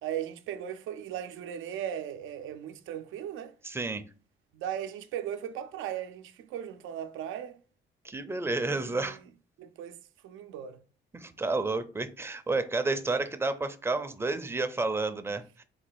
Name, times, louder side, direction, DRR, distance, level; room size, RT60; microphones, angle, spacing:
voice 1, 0.0-3.5 4.5-7.6 8.6-9.1 9.6-10.0 10.2-10.8, right 10 dB, 85° right, 0.5 m, -37 dB
voice 2, 3.6-4.0 8.0-9.2 11.1-15.6, right 3 dB, 10° right, 0.5 m, -31 dB
4.1 x 2.3 x 4.6 m
cardioid pair, 90°, 20 cm